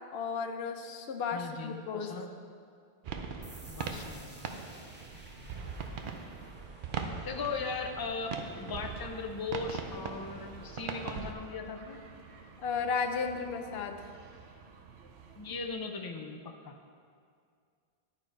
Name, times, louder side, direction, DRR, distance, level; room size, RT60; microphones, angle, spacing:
voice 1, 0.1-2.1 12.6-14.1, left 5 dB, 75° left, 6 dB, 0.8 m, -34 dB
voice 2, 1.3-2.3 3.7-4.7 5.4-5.6 7.2-12.0 15.4-16.8, left 4 dB, 35° left, 4 dB, 0.4 m, -38 dB
sound 1, 3.0-11.3, right 5 dB, 60° right, 0.7 m, -40 dB
sound 2, 3.4-10.8, right 1 dB, 10° right, 0.7 m, -57 dB
sound 3, 7.1-15.7, right 5 dB, 90° right, 0.9 m, -53 dB
11.0 x 4.5 x 4.4 m, 2.2 s
omnidirectional pair, 1.1 m